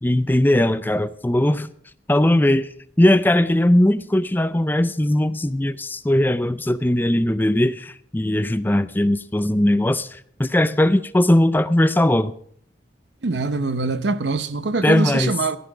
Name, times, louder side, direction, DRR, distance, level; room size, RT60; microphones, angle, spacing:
voice 1, 0.0-1.7 2.1-2.7 3.0-12.3 14.8-15.3, left 1 dB, 10° left, 0.4 m, -19 dB
voice 2, 13.2-15.6, right 3 dB, 75° right, 0.8 m, -23 dB
15.5 x 12.5 x 4.9 m
head